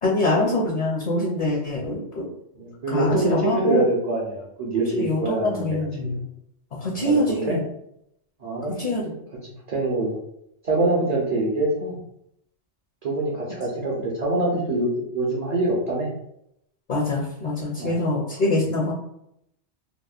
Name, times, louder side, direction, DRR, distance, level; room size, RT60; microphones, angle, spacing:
voice 1, 0.0-2.2 2.9-3.8 4.9-6.2 6.8-7.6 8.8-9.1 10.8-11.1 16.9-18.9, left 2 dB, 50° left, -3 dB, 0.6 m, -24 dB
voice 2, 2.6-6.1 7.0-7.6 8.4-9.0 9.7-10.2 10.6-12.0 13.0-16.1 17.8-18.0, right 2 dB, 50° right, -4 dB, 0.5 m, -25 dB
2.8 x 2.0 x 2.4 m, 0.76 s
omnidirectional pair, 1.2 m